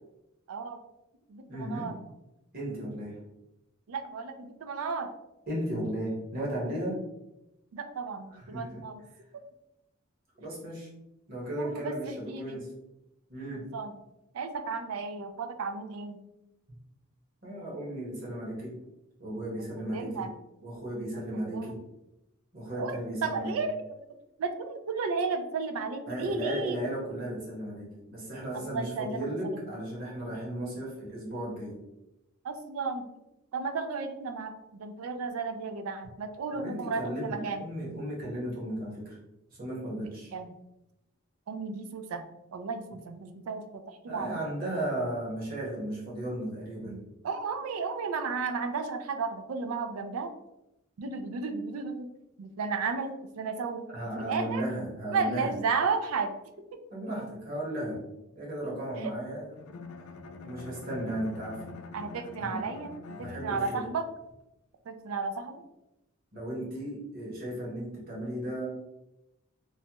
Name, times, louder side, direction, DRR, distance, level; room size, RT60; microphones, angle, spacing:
voice 1, 0.5-0.8 1.3-1.9 3.9-5.1 7.7-9.0 9.3-9.4 11.5-12.6 13.5-13.9 14.3-16.2 19.6-20.3 21.1-21.2 21.5-21.7 22.8-24.0 24.4-26.8 28.5-29.6 32.4-33.1 33.5-37.6 40.3-40.5 41.5-42.2 42.5-44.5 47.2-50.3 51.0-52.1 52.4-54.7 55.1-56.3 59.0-59.1 61.9-64.1 64.9-65.6, right 4 dB, 90° right, 7 dB, 0.4 m, -33 dB
voice 2, 1.5-1.9 2.5-3.1 5.5-7.0 8.3-8.8 10.4-10.9 11.3-12.7 13.3-13.7 17.4-18.8 19.2-20.3 20.6-21.8 22.5-23.6 26.1-31.8 36.5-39.2 39.6-40.3 44.1-47.0 53.9-55.5 56.9-58.0 58.3-59.8 60.4-61.7 62.4-62.6 63.1-63.8 66.3-68.7, right 1 dB, 45° right, -5 dB, 1.1 m, -35 dB
Bowed string instrument, 59.6-63.9, left 4 dB, 75° left, 0.3 m, -45 dB
3.1 x 2.2 x 2.8 m, 0.91 s
head